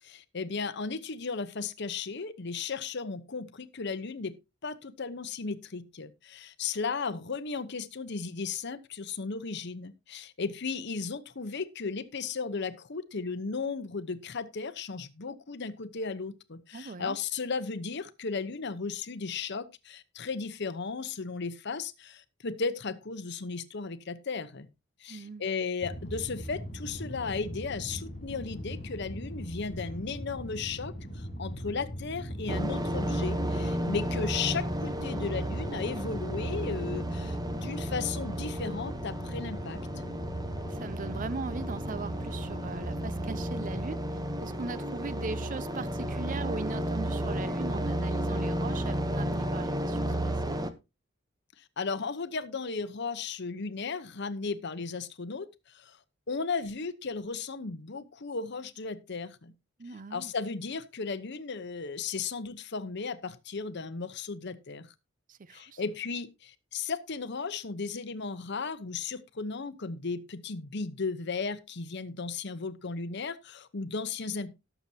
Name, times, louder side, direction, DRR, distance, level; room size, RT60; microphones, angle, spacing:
voice 1, 0.0-4.3 4.6-24.7 25.0-39.8 51.6-56.0 56.3-59.5 60.1-64.9 65.5-74.5, left 4 dB, 60° left, 0.9 m, -35 dB
voice 2, 16.7-17.2 25.1-25.4 40.7-44.0 44.4-50.6 59.8-60.3 65.3-65.8, right 4 dB, 40° right, 0.5 m, -40 dB
sound 1, 25.8-43.9, equal, 40° left, 5.1 m, -40 dB
sound 2, 32.5-50.7, right 1 dB, 20° right, 0.9 m, -33 dB
18.0 x 7.0 x 2.8 m
head